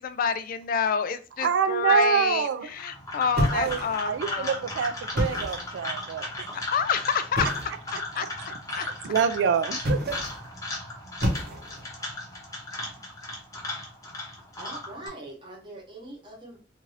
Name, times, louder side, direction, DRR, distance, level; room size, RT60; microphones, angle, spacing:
voice 1, 0.0-4.6 6.7-7.5 7.9-8.3 8.8-8.9, left 6 dB, 50° left, 0.3 m, -28 dB
voice 2, 1.4-2.7 3.5-6.5 7.4-7.5 8.1-8.3 8.7-10.2, right 7 dB, 80° right, 0.3 m, -26 dB
sound 1, 2.7-15.1, left 2 dB, 20° left, 0.9 m, -36 dB
sound 2, 3.4-4.2 5.0-5.7 7.3-7.8 9.8-10.4 11.2-11.9, equal, 60° right, 1.0 m, -29 dB
voice 3, 14.6-16.6, right 1 dB, 25° right, 1.1 m, -42 dB
2.5 x 2.5 x 3.1 m
head